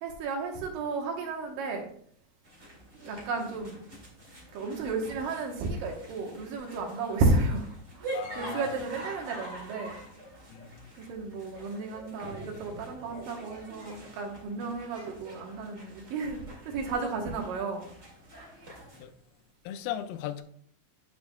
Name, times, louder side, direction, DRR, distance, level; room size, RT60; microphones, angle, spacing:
voice 1, 0.0-1.9 2.9-3.8 4.5-7.7 7.9-10.0 11.0-17.9, right 3 dB, 70° right, 2.5 m, -32 dB
sound 1, 2.4-19.0, right 1 dB, 30° right, 1.4 m, -45 dB
voice 2, 8.1-8.8 10.5-10.7 19.0-19.1 19.7-20.4, left 11 dB, 90° left, 2.5 m, -37 dB
9.4 x 7.1 x 2.2 m
omnidirectional pair, 4.3 m